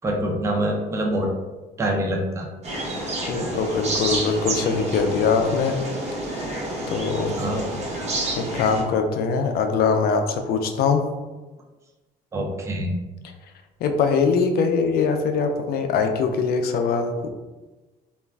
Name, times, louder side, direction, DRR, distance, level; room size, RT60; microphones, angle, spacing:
voice 1, 0.0-1.3 1.8-2.5 3.4-3.5 7.4-7.7 12.3-13.0, right 1 dB, 15° right, 1 dB, 0.4 m, -25 dB
sound 1, 2.6-8.8, right 1 dB, 40° right, 0.8 m, -29 dB
voice 2, 3.3-5.8 6.9-7.4 8.4-11.0 13.8-17.3, left 5 dB, 65° left, 5 dB, 0.4 m, -22 dB
2.4 x 2.1 x 3.2 m, 1.2 s
cardioid pair, 110°, 17 cm